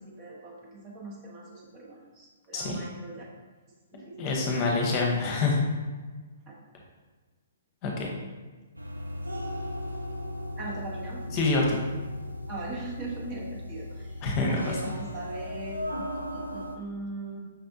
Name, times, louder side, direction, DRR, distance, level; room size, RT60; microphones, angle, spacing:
voice 1, 0.0-3.2 3.9-4.6 6.5-6.6 10.6-11.2 12.5-17.4, right 2 dB, 25° right, -4 dB, 1.0 m, -40 dB
voice 2, 4.2-5.6 7.8-8.1 11.3-11.8 14.2-14.7, left 3 dB, 30° left, -1 dB, 0.9 m, -26 dB
sound 1, 8.8-16.8, left 1 dB, 85° right, 0.5 m, -37 dB
5.6 x 3.3 x 2.7 m, 1.4 s
figure-of-eight pair, 120°, 0 cm